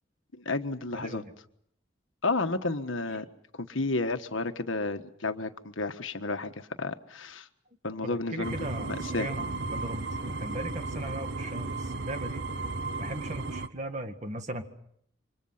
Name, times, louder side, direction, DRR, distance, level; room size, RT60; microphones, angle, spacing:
voice 1, 0.3-1.2 2.2-3.3 3.6-7.5 7.8-9.3, left 3 dB, 80° left, 8 dB, 1.5 m, -32 dB
voice 2, 0.9-1.3 8.0-12.7 13.0-14.6, right 1 dB, 35° right, 7 dB, 1.9 m, -38 dB
sound 1, 8.4-13.7, right 3 dB, 60° right, 0.9 m, -35 dB
29.0 x 25.5 x 5.8 m, 0.68 s
head